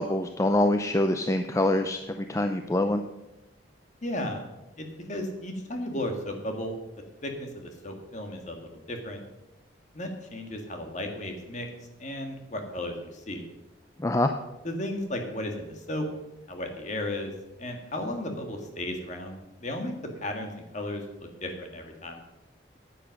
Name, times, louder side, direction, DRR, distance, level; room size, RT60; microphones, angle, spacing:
voice 1, 0.0-3.0 14.0-14.4, left 1 dB, 15° left, 7 dB, 0.5 m, -25 dB
voice 2, 4.0-4.5 4.8-6.7 7.2-9.2 9.9-11.7 12.0-13.4 14.6-16.1 16.5-17.3 17.6-19.9 20.2-22.2, left 1 dB, 40° left, 4 dB, 1.9 m, -34 dB
10.0 x 9.1 x 6.5 m, 0.97 s
head